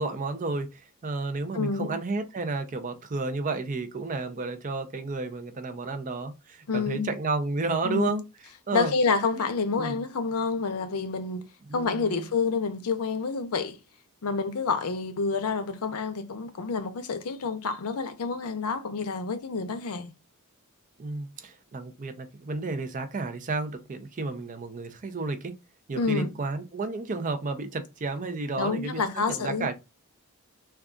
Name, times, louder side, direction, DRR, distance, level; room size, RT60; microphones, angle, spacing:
voice 1, 0.0-8.2 8.7-8.9 9.4-9.5 9.8-10.0 11.7-12.3 21.0-25.5 25.9-29.7, right 3 dB, 35° right, 0.4 m, -32 dB
voice 2, 1.5-1.9 6.7-7.1 7.8-8.2 8.7-11.4 11.7-13.8 14.2-20.1 25.9-26.3 28.6-29.7, left 4 dB, 85° left, 0.6 m, -28 dB
3.7 x 2.3 x 2.3 m
head